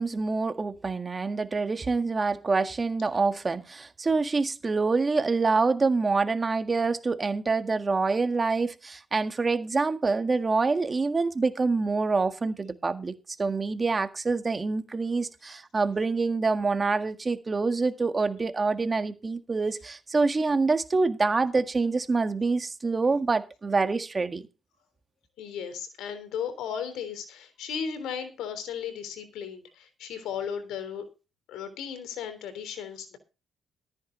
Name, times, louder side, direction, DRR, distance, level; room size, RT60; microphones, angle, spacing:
voice 1, 0.0-13.1 13.4-24.4, right 4 dB, 30° right, 1.7 m, -26 dB
voice 2, 25.4-31.0 31.5-33.2, left 7 dB, 85° left, 3.4 m, -35 dB
14.0 x 9.6 x 3.9 m
cardioid pair, 90°, 0 cm